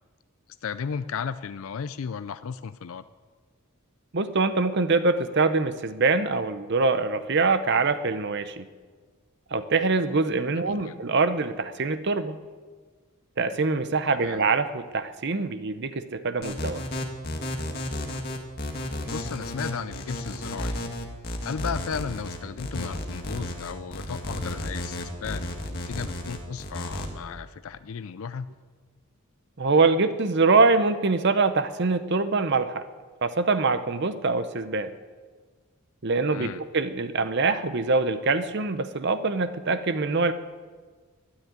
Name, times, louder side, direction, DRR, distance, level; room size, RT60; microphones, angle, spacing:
voice 1, 0.6-3.0 10.6-11.0 14.1-14.4 19.0-20.8 21.4-28.5 36.3-36.6, left 6 dB, 70° left, 13 dB, 0.4 m, -35 dB
voice 2, 4.1-8.7 9.5-12.4 13.4-16.8 29.6-32.8 33.2-34.9 36.0-40.3, right 3 dB, 50° right, 11 dB, 0.7 m, -24 dB
sound 1, 16.4-27.1, left 1 dB, 45° left, 1.9 m, -32 dB
13.0 x 9.8 x 9.3 m, 1.5 s
head